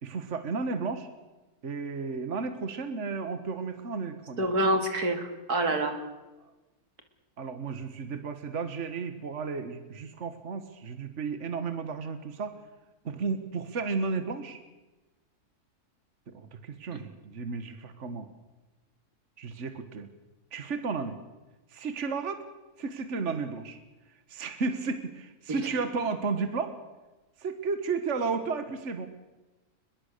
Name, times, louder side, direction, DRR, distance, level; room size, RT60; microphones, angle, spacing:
voice 1, 0.0-1.1 1.6-4.4 7.4-12.5 13.0-14.6 16.3-18.3 19.4-20.1 20.5-21.2 21.7-22.4 22.8-23.8 24.3-26.8 27.4-29.1, right 4 dB, 50° right, 10 dB, 1.8 m, -33 dB
voice 2, 4.4-6.0 16.9-17.0 25.5-25.6, right 1 dB, 80° right, 6 dB, 3.1 m, -27 dB
23.0 x 21.5 x 6.7 m, 1.1 s
omnidirectional pair, 1.6 m